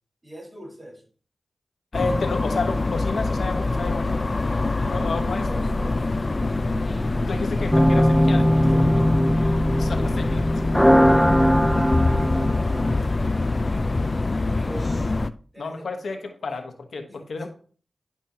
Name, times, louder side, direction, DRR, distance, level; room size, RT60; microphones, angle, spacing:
voice 1, 0.2-1.1 5.0-6.1 8.6-9.3 11.1-14.2 14.5-15.0 15.5-16.5 17.1-17.5, equal, 35° right, -1 dB, 4.6 m, -43 dB
voice 2, 1.9-4.2 4.8-5.5 7.3-8.6 9.8-10.6 15.6-16.2 16.4-17.5, left 4 dB, 85° left, 5 dB, 1.1 m, -31 dB
sound 1, 1.9-15.3, left 2 dB, 45° left, 0.5 m, -24 dB
sound 2, 7.7-13.1, equal, 5° left, 0.6 m, -20 dB
10.5 x 6.0 x 2.9 m, 0.41 s
cardioid pair, 40°, 0 cm